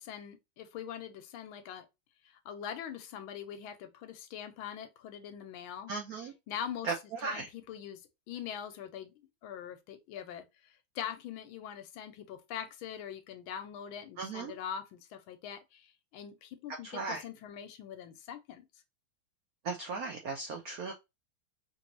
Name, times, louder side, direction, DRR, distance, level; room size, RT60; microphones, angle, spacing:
voice 1, 0.0-1.9 2.2-5.9 6.2-6.9 7.2-8.0 8.3-9.1 9.4-18.7, left 9 dB, 80° left, 1.4 m, -43 dB
voice 2, 5.9-6.3 6.8-6.9 7.2-7.5 14.2-14.5 16.9-17.2 19.6-20.9, right 4 dB, 80° right, 0.8 m, -36 dB
3.3 x 2.6 x 2.9 m
omnidirectional pair, 2.3 m